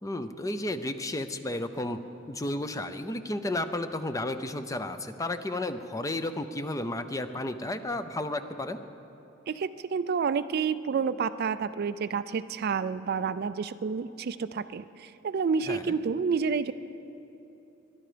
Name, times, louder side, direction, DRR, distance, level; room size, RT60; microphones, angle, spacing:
voice 1, 0.0-2.0 2.3-8.8 15.7-15.8, left 1 dB, 15° left, 10 dB, 0.6 m, -32 dB
voice 2, 9.5-16.7, right 5 dB, 55° right, 14 dB, 0.4 m, -29 dB
21.5 x 11.5 x 5.0 m, 3.0 s
head